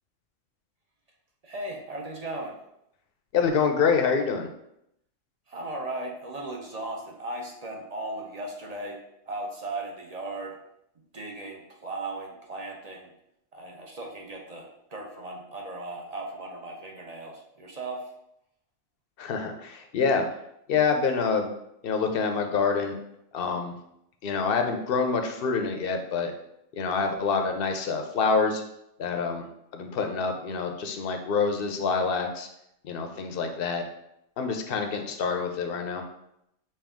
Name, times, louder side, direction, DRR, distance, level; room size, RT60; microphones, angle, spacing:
voice 1, 1.4-2.6 5.5-9.0 9.3-10.6 11.1-13.1 13.5-18.1, right 2 dB, 40° right, 0 dB, 0.6 m, -37 dB
voice 2, 3.3-4.5 19.2-20.2 20.7-21.5 21.8-23.0 23.3-23.7 24.2-26.3 26.7-28.6 29.0-29.4 29.7-32.5 32.8-33.8 34.4-36.0, left 5 dB, 60° left, 5 dB, 0.7 m, -26 dB
5.5 x 2.6 x 3.5 m, 0.80 s
omnidirectional pair, 1.3 m